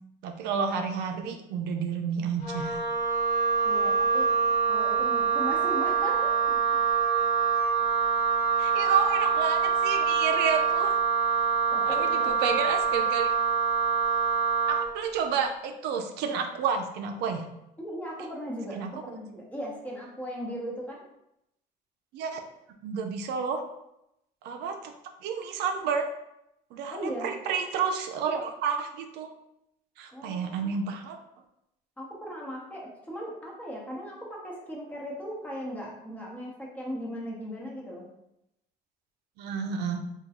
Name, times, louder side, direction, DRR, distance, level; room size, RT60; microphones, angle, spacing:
voice 1, 0.2-2.8 8.6-11.0 11.9-13.3 14.7-17.5 18.7-18.9 22.1-22.4 22.8-23.6 24.4-24.9 25.2-26.0 26.7-29.3 30.0-31.2 39.4-40.0, right 6 dB, 85° right, 5 dB, 0.4 m, -30 dB
Wind instrument woodwind instrument, 2.4-14.9, right 6 dB, 25° left, 1.2 m, -25 dB
voice 2, 3.6-4.4 4.7-6.6 11.7-12.3 17.8-21.0 26.9-27.3 30.1-30.7 32.0-38.0, equal, 10° left, -4 dB, 1.0 m, -37 dB
3.5 x 2.2 x 2.9 m, 0.83 s
cardioid pair, 110°, 17 cm